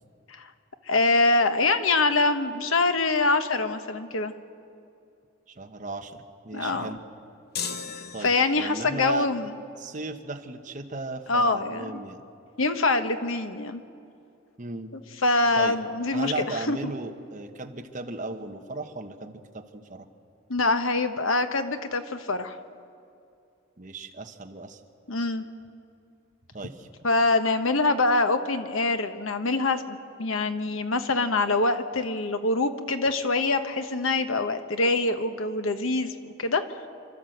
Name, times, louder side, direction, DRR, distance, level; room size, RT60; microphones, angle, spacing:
voice 1, 0.9-4.3 6.5-6.9 8.2-9.5 11.3-12.0 12.6-13.8 15.2-16.9 20.5-22.6 25.1-25.4 27.0-36.6, left 3 dB, 80° left, 8 dB, 1.2 m, -24 dB
voice 2, 5.5-7.0 8.1-9.3 9.8-12.2 14.6-14.9 15.6-15.7 16.1-20.1 23.8-24.8 26.5-26.9, right 3 dB, 40° right, 5 dB, 1.2 m, -36 dB
sound 1, 7.5-8.9, left 6 dB, 50° left, 1.0 m, -35 dB
29.0 x 12.5 x 7.9 m, 2.6 s
head